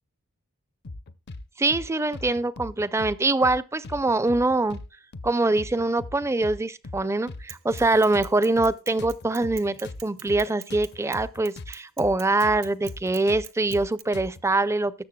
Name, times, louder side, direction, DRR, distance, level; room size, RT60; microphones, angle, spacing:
sound 1, 0.8-1.4 1.7-1.9 2.1-3.1 3.4-3.6 3.8-4.9 5.1-5.3 5.6-6.6 6.8-7.0 7.3-8.7 9.0-11.7 12.0-12.1 12.4-14.4, left 2 dB, 50° left, 0.5 m, -39 dB
voice 1, 1.6-4.8 5.2-14.9, right 2 dB, 10° right, 0.4 m, -24 dB
Bicycle / Mechanisms, 7.5-14.0, right 15 dB, 65° right, 0.8 m, -43 dB
19.0 x 7.1 x 2.2 m
head